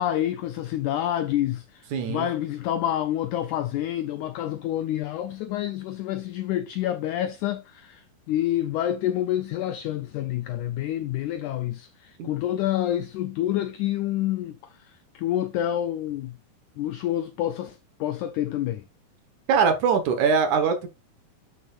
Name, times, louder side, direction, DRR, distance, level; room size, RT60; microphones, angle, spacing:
voice 1, 0.0-16.3 16.8-18.8, left 12 dB, 80° left, 1.8 m, -28 dB
voice 2, 1.9-2.3 12.2-12.3 19.5-20.9, right 6 dB, 65° right, 2.3 m, -22 dB
11.0 x 6.1 x 2.4 m
omnidirectional pair, 4.2 m